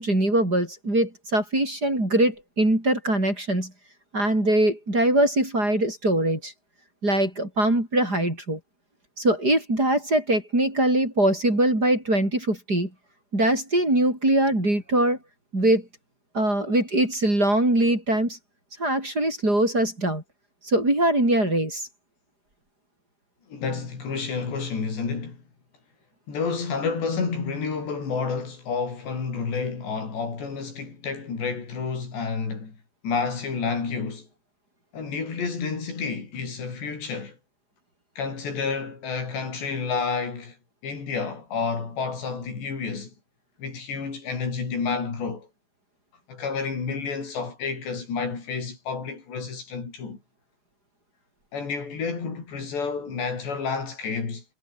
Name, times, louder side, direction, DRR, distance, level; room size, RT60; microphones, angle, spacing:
voice 1, 0.0-3.7 4.1-6.5 7.0-8.6 9.2-12.9 13.3-15.2 15.5-15.9 16.3-18.4 18.8-20.2 20.6-21.9, right 1 dB, 20° right, 8.0 m, -22 dB
voice 2, 23.5-25.4 26.3-32.8 33.0-34.3 34.9-37.4 38.2-40.6 40.8-43.1 43.6-45.5 46.3-50.2 51.5-54.4, left 5 dB, 80° left, 9.0 m, -30 dB
omnidirectional pair, 4.9 m